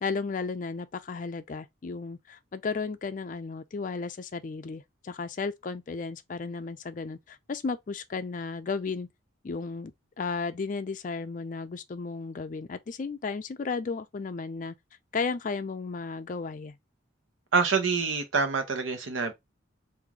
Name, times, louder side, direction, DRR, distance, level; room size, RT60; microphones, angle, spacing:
voice 1, 0.0-9.1 9.4-14.7 15.1-16.8, left 4 dB, 40° left, 0.4 m, -34 dB
voice 2, 17.5-19.3, right 5 dB, 85° right, 0.9 m, -26 dB
3.0 x 2.6 x 3.7 m
head